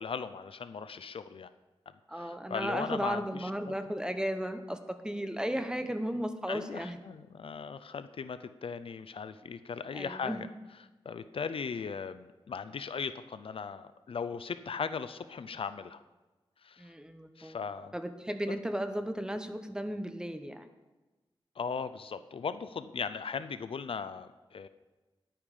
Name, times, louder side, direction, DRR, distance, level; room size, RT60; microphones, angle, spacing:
voice 1, 0.0-1.5 2.1-3.7 6.5-10.5 11.0-16.0 16.6-16.9 17.4-17.9 18.5-18.6 21.6-24.7, left 6 dB, 70° left, 12 dB, 0.5 m, -38 dB
voice 2, 2.1-7.0 9.9-10.4 16.8-17.6 17.9-20.7, equal, 10° right, 9 dB, 0.9 m, -35 dB
10.5 x 8.8 x 4.9 m, 1.2 s
wide cardioid pair, 70°, 10 cm